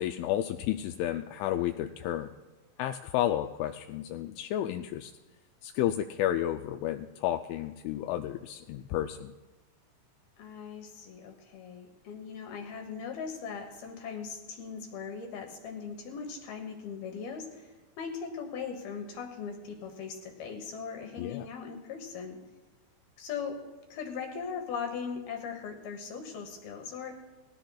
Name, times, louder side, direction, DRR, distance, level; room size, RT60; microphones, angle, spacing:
voice 1, 0.0-2.3 2.8-5.1 5.6-9.3 21.2-21.5, left 12 dB, 85° left, 6 dB, 2.9 m, -31 dB
voice 2, 10.4-22.4 23.2-23.6 23.9-27.2, left 6 dB, 70° left, 4 dB, 2.5 m, -39 dB
19.5 x 17.0 x 2.3 m, 1.2 s
omnidirectional pair, 5.5 m